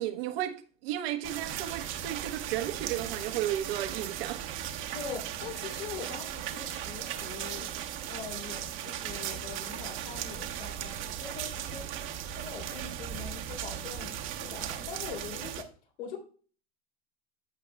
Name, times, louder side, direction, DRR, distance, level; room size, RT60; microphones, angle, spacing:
voice 1, 0.0-4.4, right 12 dB, 70° right, 1.3 m, -34 dB
sound 1, 1.2-15.6, right 10 dB, 40° right, 1.1 m, -37 dB
voice 2, 4.9-7.8 8.1-12.1 12.3-15.7 16.0-16.2, left 6 dB, 85° left, 3.5 m, -43 dB
14.5 x 5.8 x 2.3 m
supercardioid pair, 120°, 31 cm